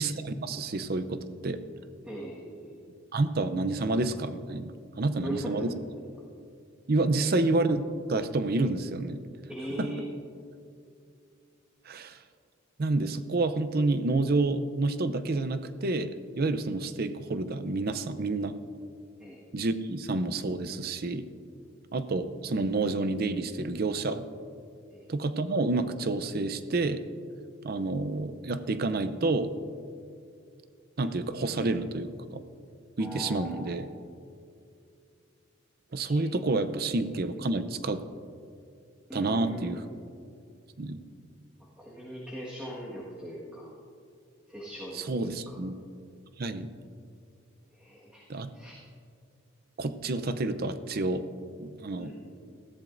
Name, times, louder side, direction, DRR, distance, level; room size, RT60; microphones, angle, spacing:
voice 1, 0.0-1.6 3.1-4.7 5.0-5.7 6.9-7.8 8.1-9.2 9.8-9.9 11.9-12.2 12.8-18.5 19.5-21.3 21.9-24.3 25.1-27.0 27.6-29.5 31.0-32.4 33.0-33.9 35.9-38.0 39.1-39.8 40.8-41.0 44.9-45.7 46.4-46.7 48.3-48.5 49.8-51.3 51.6-52.1, right 2 dB, 45° right, 11 dB, 0.6 m, -29 dB
voice 2, 2.0-2.8 5.2-5.7 7.2-7.3 9.5-10.0 19.2-19.4 24.9-25.1 33.0-33.8 36.0-36.2 39.1-39.9 41.8-43.7 44.5-45.6 47.7-48.2 48.5-48.7 51.9-52.1, equal, 5° right, -6 dB, 1.5 m, -40 dB
19.5 x 14.0 x 2.6 m, 2.4 s
head